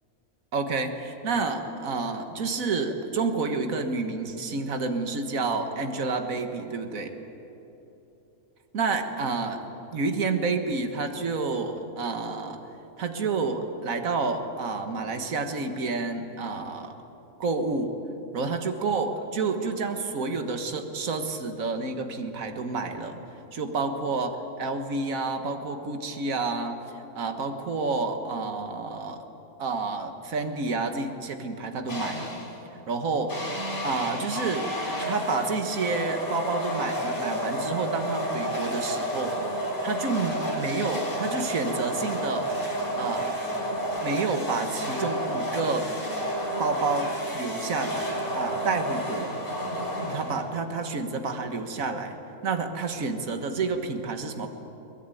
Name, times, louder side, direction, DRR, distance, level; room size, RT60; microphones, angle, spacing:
voice 1, 0.5-7.1 8.7-9.6 9.9-12.6 13.0-16.9 17.4-18.0 18.3-23.2 23.5-26.8 27.2-29.2 29.6-32.3 32.9-33.4 33.8-34.7 35.1-39.4 39.8-42.5 43.0-43.4 44.0-45.9 46.6-48.0 48.3-49.3 50.1-52.2 52.4-54.5, right 4 dB, 75° right, 6 dB, 1.9 m, -29 dB
sound 1, 31.9-32.5 33.3-50.6, equal, 60° left, 5.9 m, -31 dB
23.0 x 19.5 x 9.2 m, 3.0 s
omnidirectional pair, 1.5 m